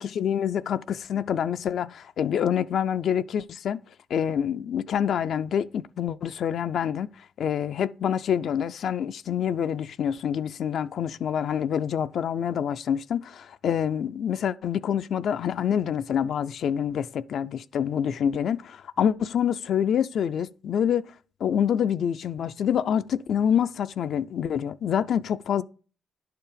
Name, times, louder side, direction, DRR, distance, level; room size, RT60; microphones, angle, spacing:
voice 1, 0.0-3.8 4.1-7.1 7.4-21.1 21.4-25.6, left 8 dB, 65° left, 0.4 m, -26 dB
10.5 x 4.7 x 5.0 m
cardioid pair, 90°, 0 cm